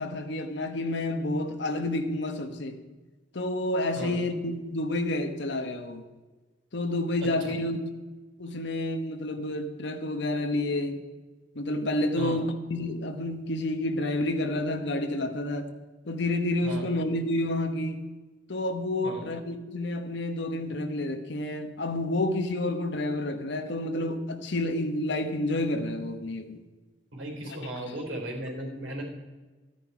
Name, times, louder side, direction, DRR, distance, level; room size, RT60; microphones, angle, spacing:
voice 1, 0.0-2.8 3.3-6.0 6.7-7.9 8.4-11.0 11.5-15.7 16.1-18.1 18.5-26.6, left 1 dB, 65° left, 7 dB, 1.2 m, -29 dB
voice 2, 27.1-29.0, right 1 dB, 75° right, 1 dB, 3.8 m, -36 dB
12.5 x 9.8 x 4.8 m, 1.3 s
head